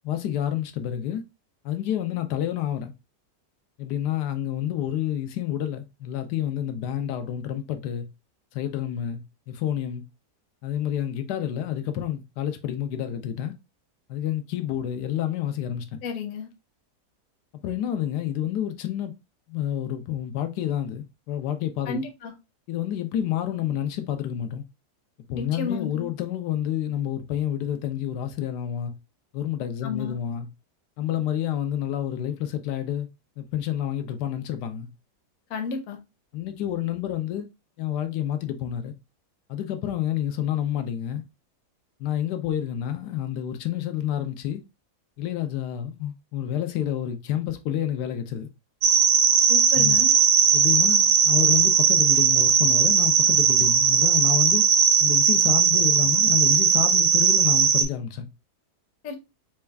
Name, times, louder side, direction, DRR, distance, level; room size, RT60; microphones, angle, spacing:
voice 1, 0.0-1.2 1.6-2.9 3.8-8.0 8.5-9.2 9.5-10.0 10.6-13.5 14.1-16.0 17.6-19.1 19.5-22.0 22.7-24.6 25.3-28.9 29.3-30.5 31.0-33.1 33.4-34.9 36.3-37.5 37.8-38.9 39.5-41.2 42.0-44.6 45.2-48.5 49.7-50.0 50.5-54.7 55.0-58.3, left 11 dB, 90° left, 1.2 m, -29 dB
voice 2, 16.0-16.5 21.9-22.3 25.3-26.1 29.8-30.2 35.5-36.0 49.5-50.1 59.0-59.2, left 5 dB, 60° left, 1.0 m, -32 dB
sound 1, 48.8-57.8, right 7 dB, 90° right, 0.5 m, -19 dB
4.3 x 2.3 x 3.3 m
omnidirectional pair, 1.8 m